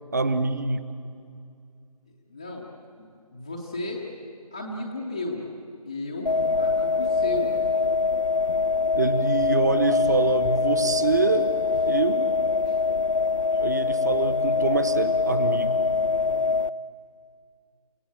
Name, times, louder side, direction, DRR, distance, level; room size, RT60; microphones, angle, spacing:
voice 1, 0.1-0.9 9.0-11.5 11.9-12.3 13.6-15.9, right 3 dB, 30° right, 11 dB, 0.9 m, -25 dB
voice 2, 2.3-2.7 3.0-4.0 4.5-5.4 5.9-7.6 12.6-12.8, left 2 dB, 5° left, -4 dB, 0.6 m, -34 dB
sound 1, 6.3-16.7, left 4 dB, 55° left, 0.6 m, -24 dB
29.0 x 17.0 x 8.8 m, 2.4 s
figure-of-eight pair, 165°, 20 cm